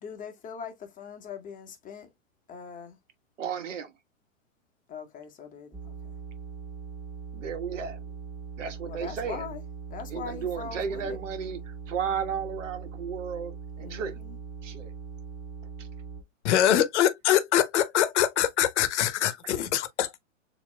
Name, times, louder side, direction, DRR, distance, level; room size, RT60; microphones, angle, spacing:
voice 1, 0.0-2.1 2.5-3.0 4.9-6.2 8.8-9.6 9.9-11.2 13.8-14.3, left 6 dB, 20° left, 1.2 m, -41 dB
voice 2, 3.4-3.9 7.3-8.0 8.6-9.5 10.1-14.2 14.6-14.9 15.8-15.9 19.4-19.6, right 7 dB, 65° right, 1.4 m, -34 dB
sound 1, 5.7-16.2, right 5 dB, ahead, 0.4 m, -41 dB
voice 3, 16.4-20.1, left 11 dB, 60° left, 1.1 m, -24 dB
6.9 x 3.0 x 2.2 m
hypercardioid pair, 125°, 40 cm